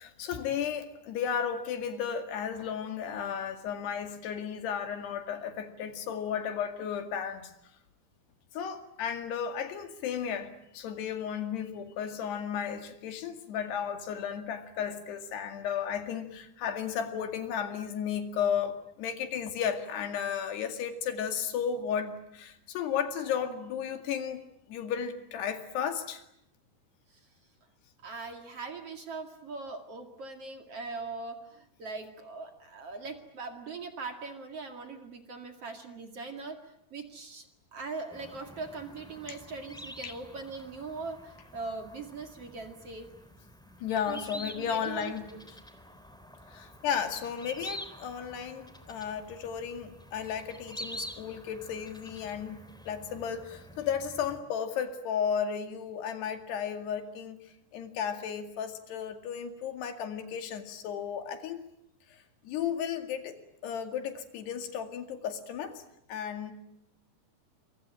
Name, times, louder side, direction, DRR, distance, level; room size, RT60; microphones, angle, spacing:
voice 1, 0.0-7.5 8.5-26.2 40.0-40.1 43.8-45.3 46.5-52.6 52.9-57.4 57.7-61.6 62.1-65.8 66.1-66.5, left 8 dB, 80° left, 7 dB, 4.3 m, -34 dB
voice 2, 28.0-37.5 37.7-43.1 44.1-44.2 44.6-45.4, right 3 dB, 45° right, 6 dB, 2.7 m, -41 dB
sound 1, 38.1-54.4, equal, ahead, 2.7 m, -47 dB
27.0 x 24.5 x 9.0 m, 0.76 s
omnidirectional pair, 4.7 m